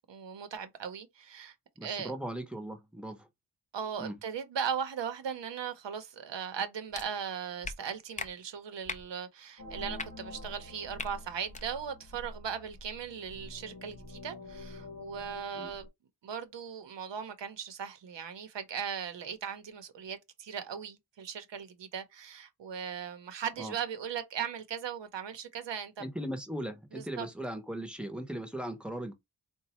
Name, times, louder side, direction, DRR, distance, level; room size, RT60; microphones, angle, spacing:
voice 1, 0.1-1.6 1.8-2.1 3.7-15.9 16.2-26.0 26.9-27.3, right 7 dB, 85° right, 0.8 m, -38 dB
voice 2, 1.8-3.3 4.0-4.2 15.5-15.7 23.6-23.7 26.0-29.1, right 1 dB, ahead, 0.7 m, -38 dB
sound 1, 6.9-7.1 7.6-7.8 8.2-8.3 8.9-9.1 9.9-10.1 11.0-11.1 11.5-11.6, left 3 dB, 20° left, 0.3 m, -38 dB
sound 2, 9.6-15.9, left 1 dB, 50° left, 0.9 m, -46 dB
4.0 x 2.2 x 2.9 m
wide cardioid pair, 130°, 42 cm